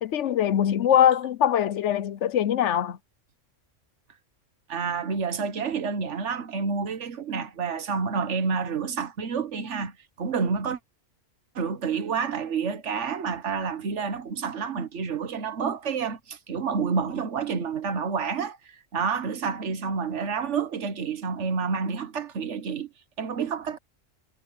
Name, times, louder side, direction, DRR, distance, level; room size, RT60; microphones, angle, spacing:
voice 1, 0.0-3.0, left 10 dB, 70° left, 1.0 m, -22 dB
voice 2, 4.7-10.8 11.5-22.9 23.2-23.8, right 5 dB, 70° right, 1.4 m, -29 dB
omnidirectional pair, 1.3 m